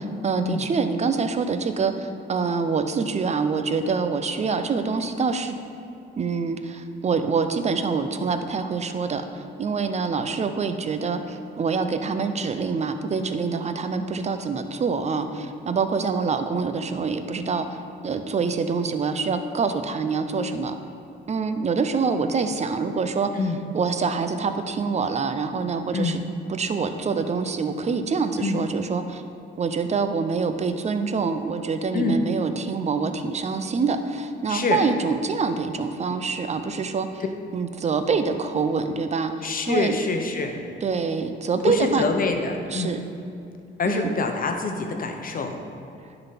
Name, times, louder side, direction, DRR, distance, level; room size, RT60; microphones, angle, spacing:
voice 1, 0.2-5.6 6.2-17.8 18.0-20.8 21.3-23.3 23.7-26.2 26.5-29.2 29.6-37.2 37.5-40.0 40.8-42.1 42.7-43.0 43.8-44.1, right 5 dB, 35° right, 9 dB, 0.6 m, -25 dB
voice 2, 23.3-23.6 25.9-26.2 28.4-28.6 31.9-32.2 34.5-34.8 39.4-40.6 41.6-43.0 43.8-45.6, left 3 dB, 45° left, 4 dB, 1.0 m, -25 dB
10.0 x 4.0 x 5.8 m, 2.6 s
cardioid pair, 90°, 20 cm